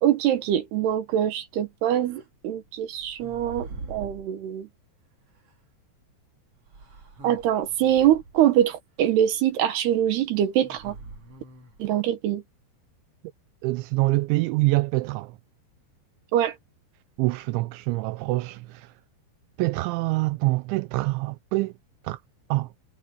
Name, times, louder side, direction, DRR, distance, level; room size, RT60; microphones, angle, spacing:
voice 1, 0.0-4.7 7.2-11.0 11.8-12.4 16.3-16.5, right 11 dB, 70° right, 3.1 m, -24 dB
sound 1, 2.0-2.2 3.0-4.3 5.5-5.6 6.7-8.5 10.6-12.0, right 3 dB, 35° right, 3.4 m, -43 dB
voice 2, 13.6-15.3 17.2-18.9 19.6-21.7 22.0-22.2 22.5-22.7, right 21 dB, 85° right, 3.0 m, -25 dB
omnidirectional pair, 5.4 m